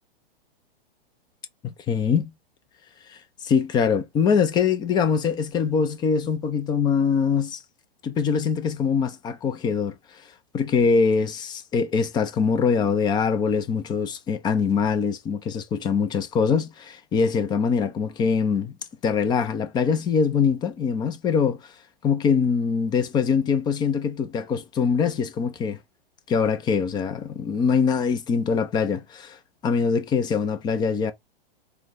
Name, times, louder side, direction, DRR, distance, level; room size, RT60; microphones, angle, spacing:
voice 1, 1.6-2.3 3.1-7.6 8.0-9.9 10.5-18.7 19.0-21.6 22.0-25.8 26.3-29.4 29.6-31.1, left 6 dB, 15° left, 0.5 m, -23 dB
4.7 x 2.2 x 3.8 m
figure-of-eight pair, 105°, 30 cm